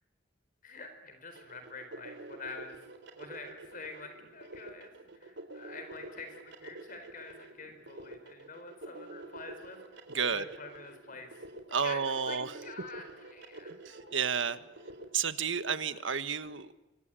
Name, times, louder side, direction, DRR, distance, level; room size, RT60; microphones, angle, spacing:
voice 1, 0.6-11.4 11.8-14.3 15.8-15.9, left 3 dB, 45° left, 7 dB, 4.4 m, -47 dB
sound 1, 1.3-15.0, right 2 dB, 65° right, 4.0 m, -48 dB
voice 2, 10.1-10.4 11.7-12.6 13.7-14.6 15.1-16.7, right 6 dB, 85° right, 12 dB, 1.4 m, -31 dB
26.5 x 25.0 x 9.1 m, 1.0 s
head